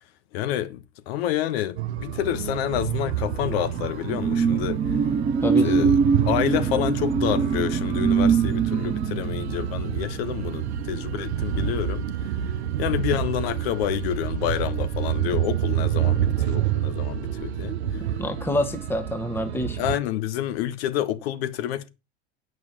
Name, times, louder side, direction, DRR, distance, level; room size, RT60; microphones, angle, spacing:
voice 1, 0.3-4.8 5.6-6.0 6.3-12.1 12.8-17.8 19.8-21.9, left 12 dB, 65° left, 1.3 m, -28 dB
sound 1, 1.8-20.0, right 10 dB, 80° right, 0.8 m, -28 dB
sound 2, 3.2-12.2 12.6-12.8, right 5 dB, 20° right, 0.8 m, -24 dB
voice 2, 5.4-5.9 18.2-19.8, left 1 dB, 5° left, 1.3 m, -27 dB
9.1 x 5.9 x 6.0 m
hypercardioid pair, 90°, 33 cm